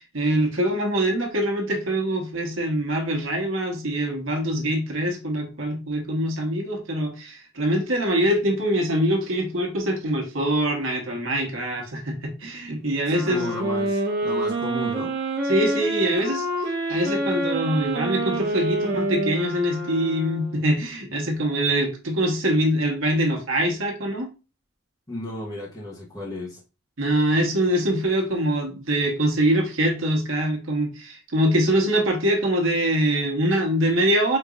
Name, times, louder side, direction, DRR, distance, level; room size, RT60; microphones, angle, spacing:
voice 1, 0.0-13.5 15.4-16.5 16.9-24.3 27.0-34.4, right 1 dB, 70° right, 2 dB, 1.1 m, -24 dB
voice 2, 13.1-15.1 25.1-26.6, left 1 dB, 20° left, -5 dB, 1.1 m, -33 dB
sound 1, 13.1-20.8, right 1 dB, 45° right, 1.0 m, -27 dB
5.1 x 3.0 x 2.4 m, 0.32 s
head